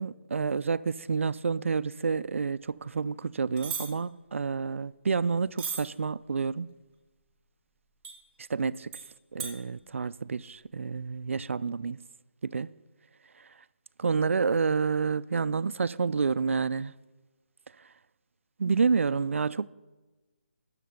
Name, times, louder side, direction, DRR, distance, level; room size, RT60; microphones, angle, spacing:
voice 1, 0.0-6.7 8.5-8.9 9.3-12.0 12.4-12.7 13.4-13.5 14.0-16.9 18.6-19.7, right 5 dB, 80° right, 0.3 m, -29 dB
sound 1, 3.6-3.9 5.6-5.8 8.0-8.2 8.9-9.0 9.4-9.5, right 6 dB, 15° right, 0.8 m, -35 dB
10.0 x 6.6 x 5.0 m
hypercardioid pair, 170°, 7 cm